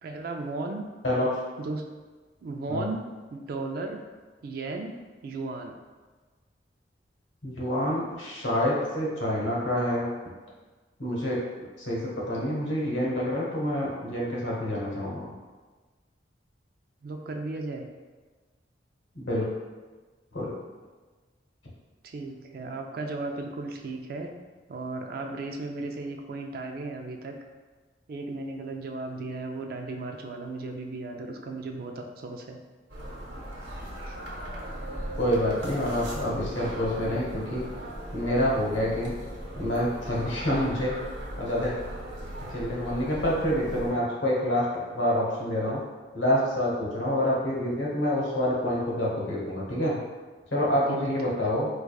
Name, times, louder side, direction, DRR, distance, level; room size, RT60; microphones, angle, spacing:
voice 1, 0.0-0.9 1.6-1.9 2.4-4.0 4.4-4.9 5.2-5.8 17.0-17.9 22.0-24.3 24.7-27.4 28.1-32.6 34.0-34.2 50.9-51.4, right 3 dB, 50° right, 3 dB, 0.3 m, -35 dB
voice 2, 1.0-1.4 2.7-2.9 7.4-10.1 11.0-11.4 11.8-15.3 19.1-19.5 20.3-20.5 35.2-37.6 38.1-39.1 39.6-40.9 41.4-41.7 42.4-45.8 46.1-50.0 50.5-51.7, left 1 dB, 90° left, -5 dB, 1.0 m, -27 dB
sound 1, 32.9-43.9, right 1 dB, 80° right, 0.9 m, -38 dB
4.6 x 2.3 x 2.3 m, 1.3 s
head